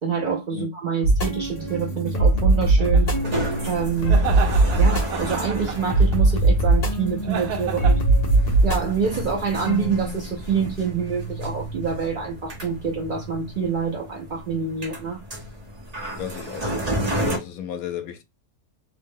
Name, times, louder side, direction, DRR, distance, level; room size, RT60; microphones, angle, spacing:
voice 1, 0.0-3.1 3.7-4.2 4.8-8.0 8.6-15.2, right 6 dB, 60° right, 0.5 m, -26 dB
sound 1, 1.0-13.6, right 2 dB, 40° left, 0.5 m, -22 dB
sound 2, 1.4-3.2 4.0-6.3 7.2-7.9, right 8 dB, 80° right, 1.0 m, -33 dB
sound 3, 3.1-17.4, right 1 dB, 35° right, 0.8 m, -33 dB
voice 2, 16.2-18.2, left 9 dB, 80° left, 1.0 m, -34 dB
2.8 x 2.0 x 3.5 m
omnidirectional pair, 1.5 m